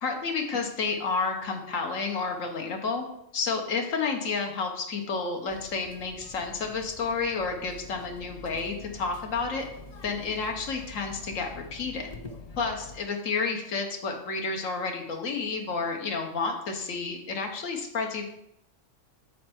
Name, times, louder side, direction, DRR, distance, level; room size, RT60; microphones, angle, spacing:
voice 1, 0.0-3.0 3.3-9.6 10.0-12.1 12.6-18.2, left 4 dB, 90° left, 3 dB, 1.4 m, -30 dB
sound 1, 5.5-13.0, left 3 dB, 55° left, 0.4 m, -46 dB
7.1 x 4.3 x 4.3 m, 0.79 s
omnidirectional pair, 1.3 m